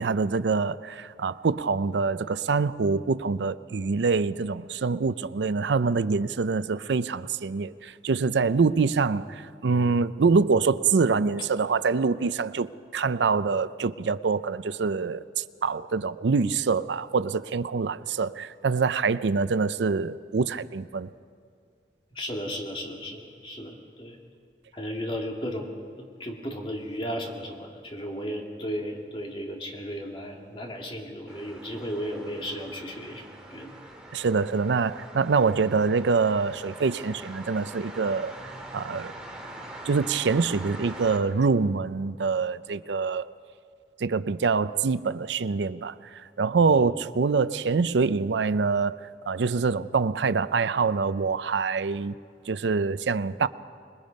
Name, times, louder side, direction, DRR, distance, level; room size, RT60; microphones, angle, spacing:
voice 1, 0.0-21.1 34.1-38.3 38.7-39.1 39.8-43.2 44.0-49.0 49.3-52.2 52.5-53.5, right 4 dB, 85° right, 15 dB, 0.5 m, -25 dB
voice 2, 22.1-24.2 24.7-33.2 33.5-33.7 46.6-46.9, equal, 30° left, 1 dB, 2.3 m, -35 dB
sound 1, 31.3-41.2, right 1 dB, 5° right, 2.3 m, -43 dB
26.0 x 21.0 x 5.3 m, 2.2 s
head